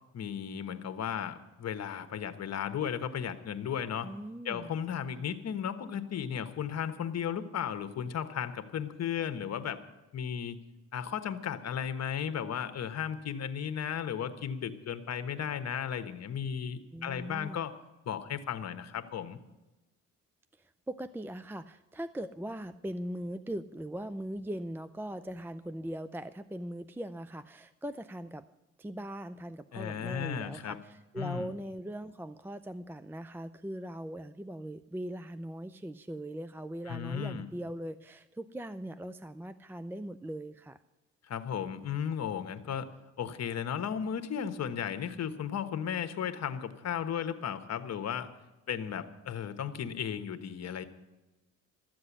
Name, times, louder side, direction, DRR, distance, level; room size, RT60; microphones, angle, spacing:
voice 1, 0.1-4.1 4.4-9.8 10.1-10.6 10.9-17.7 18.0-19.4 29.7-30.8 31.2-31.5 36.9-37.5 41.2-42.9 43.2-48.3 48.7-50.9, left 8 dB, 60° left, 9 dB, 1.3 m, -35 dB
voice 2, 4.0-4.7 16.9-17.6 20.6-28.5 28.8-40.8, right 1 dB, 5° right, 12 dB, 0.4 m, -40 dB
13.5 x 7.7 x 9.9 m, 1.0 s
cardioid pair, 90°, 30 cm